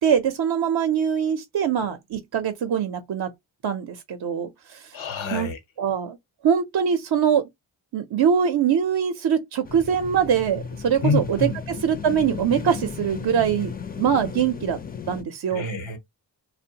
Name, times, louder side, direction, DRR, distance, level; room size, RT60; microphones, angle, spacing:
voice 1, 0.0-3.3 3.6-5.0 5.3-5.5 5.8-6.2 6.4-7.4 7.9-13.7 14.0-14.8 15.1-15.7, right 8 dB, 55° right, 0.5 m, -23 dB
voice 2, 4.9-5.6 11.0-11.6 15.5-16.0, left 3 dB, 80° left, 0.9 m, -27 dB
sound 1, 9.6-15.2, left 6 dB, 20° left, 0.4 m, -35 dB
2.5 x 2.1 x 2.8 m
cardioid pair, 55°, 46 cm